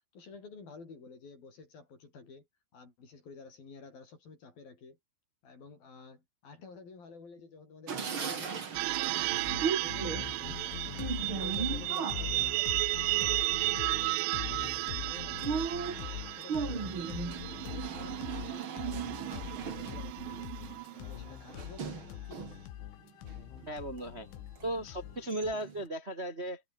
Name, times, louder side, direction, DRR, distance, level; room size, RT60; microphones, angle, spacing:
voice 1, 0.1-2.5 2.7-5.0 5.4-8.6 9.0-10.8 11.1-12.8 13.1-15.7 16.2-20.6 20.9-22.6, left 4 dB, 50° left, 7.9 m, -51 dB
sound 1, 7.9-22.7 23.1-24.1 24.6-24.7 25.0-25.8, right 6 dB, 40° right, 2.1 m, -39 dB
sound 2, 8.8-21.3, right 23 dB, 90° right, 3.0 m, -34 dB
sound 3, 9.3-25.5, left 12 dB, 85° left, 4.3 m, -43 dB
voice 2, 23.7-24.3 24.6-26.6, right 1 dB, 15° right, 2.7 m, -36 dB
omnidirectional pair, 5.4 m